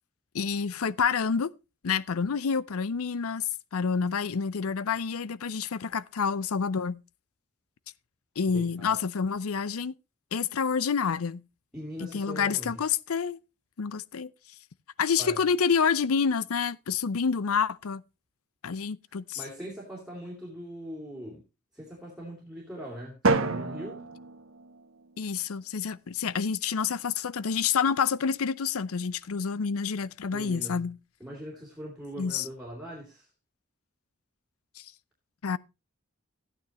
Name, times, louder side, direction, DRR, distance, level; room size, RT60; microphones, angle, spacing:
voice 1, 0.3-1.5 1.8-3.4 3.7-7.0 8.4-9.9 10.3-11.4 12.0-13.4 13.8-14.3 15.0-18.0 18.6-19.4 25.2-31.0 32.2-32.4 34.8-34.9 35.4-35.6, left 6 dB, 80° left, 0.5 m, -28 dB
voice 2, 8.5-9.0 11.7-12.8 15.2-15.4 19.3-21.4 21.7-24.1 30.3-30.9 31.2-33.3, equal, 5° right, 2.9 m, -41 dB
Drum, 23.2-25.2, right 3 dB, 70° right, 1.1 m, -29 dB
14.0 x 9.2 x 3.1 m
head